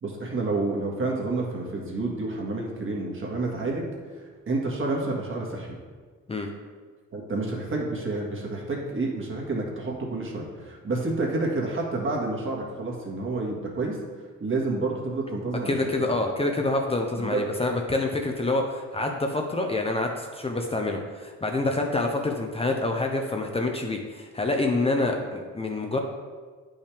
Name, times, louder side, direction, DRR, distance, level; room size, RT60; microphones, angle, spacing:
voice 1, 0.0-3.9 4.2-5.8 7.1-14.0 14.4-15.7 17.2-17.4, right 2 dB, 45° right, -1 dB, 1.9 m, -29 dB
voice 2, 15.6-26.0, left 2 dB, 20° left, 2 dB, 0.8 m, -27 dB
8.6 x 5.6 x 3.5 m, 1.5 s
cardioid pair, 90°, 30 cm